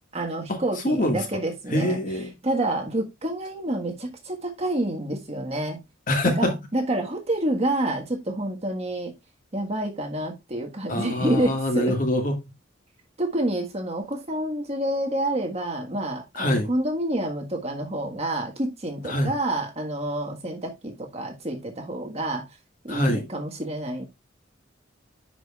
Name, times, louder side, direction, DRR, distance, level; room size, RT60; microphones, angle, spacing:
voice 1, 0.1-2.0 2.4-5.8 6.2-9.1 9.5-11.9 13.2-22.4 22.8-24.0, right 1 dB, 30° right, 1.5 m, -28 dB
voice 2, 0.8-1.4 1.7-2.3 6.1-6.5 10.9-12.4 16.3-16.7 19.0-19.3 22.9-23.2, left 1 dB, 45° left, 1.8 m, -24 dB
10.0 x 5.0 x 2.4 m
head